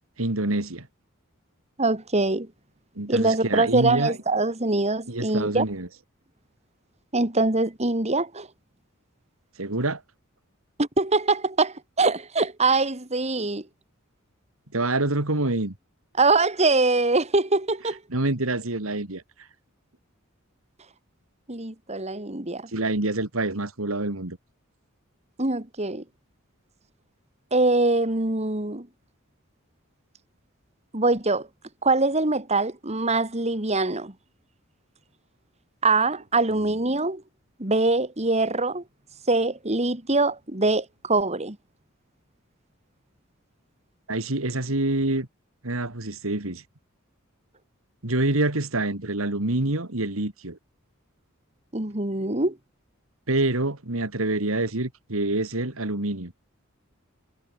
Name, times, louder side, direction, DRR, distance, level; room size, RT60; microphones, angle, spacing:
voice 1, 0.2-0.9 3.0-4.2 5.1-5.9 9.6-10.0 14.7-15.7 18.1-19.2 22.7-24.4 44.1-45.3 45.6-46.6 48.0-50.6 53.3-56.3, right 2 dB, 90° right, 2.8 m, -26 dB
voice 2, 1.8-2.5 3.1-5.6 7.1-8.5 10.8-13.7 16.2-18.0 21.5-22.7 25.4-26.0 27.5-28.9 30.9-31.5 31.8-34.1 35.8-37.2 37.6-38.8 39.3-41.6 51.7-52.6, right 3 dB, 30° right, 2.8 m, -23 dB
head